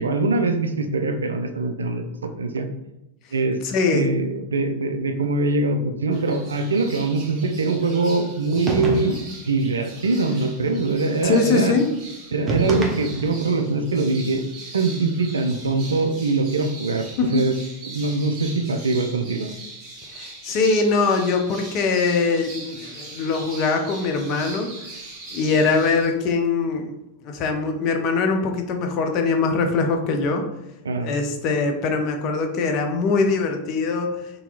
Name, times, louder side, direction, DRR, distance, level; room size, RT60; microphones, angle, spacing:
voice 1, 0.0-2.7 3.3-3.6 3.9-9.2 9.5-11.7 12.3-14.4 14.7-17.6 17.8-19.5 30.8-31.1, right 3 dB, 70° right, 7 dB, 0.3 m, -23 dB
voice 2, 3.6-4.1 11.2-11.9 17.2-17.4 20.1-24.7 25.3-26.9 27.2-30.4 31.0-34.2, left 4 dB, 40° left, 4 dB, 0.5 m, -22 dB
sound 1, 6.1-26.1, right 2 dB, 45° right, 1.2 m, -40 dB
sound 2, 8.7-9.4 12.5-13.5, right 2 dB, 25° right, 0.7 m, -25 dB
3.9 x 2.7 x 2.4 m, 0.89 s
figure-of-eight pair, 90°, 0 cm